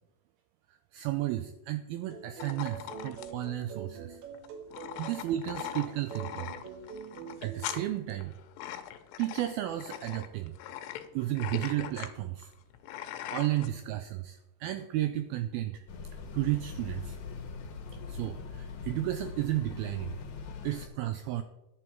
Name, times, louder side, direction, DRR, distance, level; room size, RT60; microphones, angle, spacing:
voice 1, 0.9-4.2 5.0-6.5 7.4-8.3 9.2-10.5 11.1-12.5 13.3-15.8 16.3-17.2 18.1-20.2 20.6-21.4, right 14 dB, 85° right, 9 dB, 2.1 m, -33 dB
sound 1, 2.1-7.9, right 7 dB, 65° right, 2.9 m, -45 dB
sound 2, 2.4-13.7, left 11 dB, 80° left, 3.0 m, -41 dB
sound 3, 15.9-20.9, left 5 dB, 60° left, 2.2 m, -41 dB
11.5 x 8.1 x 4.5 m, 0.93 s
omnidirectional pair, 4.9 m